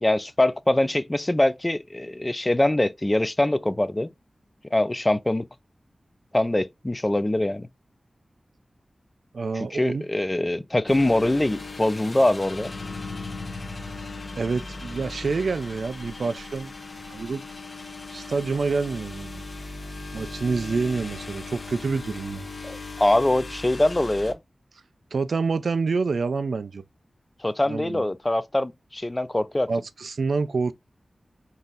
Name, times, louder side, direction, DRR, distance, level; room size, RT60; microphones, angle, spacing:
voice 1, 0.0-4.1 4.7-5.5 6.3-7.7 9.6-12.7 22.6-24.4 27.4-29.7, left 1 dB, 20° left, 0.4 m, -23 dB
voice 2, 9.3-10.1 14.4-16.7 17.0-17.5 18.1-19.4 20.1-22.5 25.1-26.8 27.7-28.1 29.7-30.7, right 4 dB, 80° right, 0.3 m, -27 dB
sound 1, 10.9-24.3, left 3 dB, 50° left, 0.8 m, -38 dB
3.9 x 2.7 x 3.7 m
wide cardioid pair, 75°, 0 cm